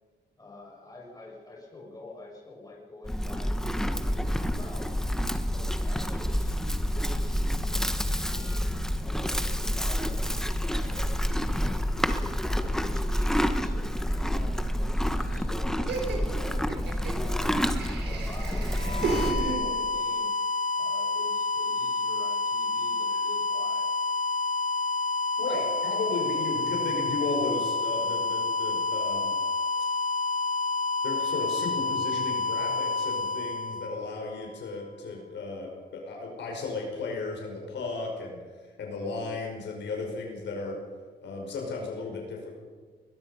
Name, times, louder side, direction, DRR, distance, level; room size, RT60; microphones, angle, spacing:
voice 1, 0.4-4.9 5.5-8.7 9.0-11.8 12.1-16.5 17.1-20.3 20.8-23.9, left 2 dB, 20° left, -3 dB, 6.9 m, -47 dB
Livestock farm animals working animals, 3.0-19.6, equal, 5° left, 1.2 m, -28 dB
Laughter, 15.9-20.1, right 4 dB, 70° right, 4.5 m, -34 dB
sound 1, 18.7-34.5, left 3 dB, 45° left, 1.2 m, -29 dB
voice 2, 25.4-29.3 31.0-38.4 38.8-40.8 41.2-42.5, left 3 dB, 75° left, 0 dB, 5.3 m, -34 dB
22.0 x 21.0 x 5.6 m, 1.5 s
cardioid pair, 125°, 18 cm